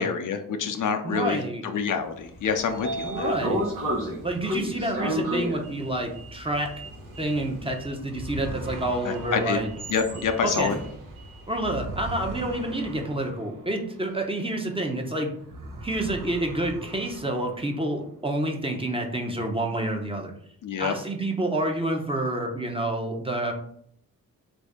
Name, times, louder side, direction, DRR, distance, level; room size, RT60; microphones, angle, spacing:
voice 1, 0.0-3.3 9.0-9.6 9.9-10.8 20.6-20.9, left 6 dB, 60° left, 5 dB, 0.5 m, -27 dB
voice 2, 1.0-1.6 3.0-3.6 4.2-6.7 7.2-9.7 10.4-10.7 11.5-15.3 15.8-20.3 20.8-23.5, right 1 dB, 15° right, 2 dB, 0.8 m, -28 dB
Sliding door, 2.2-12.4, equal, 80° right, 1.1 m, -33 dB
sound 1, 8.1-15.0 15.3-18.0, right 1 dB, 65° right, 0.8 m, -41 dB
3.2 x 2.6 x 3.5 m, 0.69 s
cardioid pair, 55°, 35 cm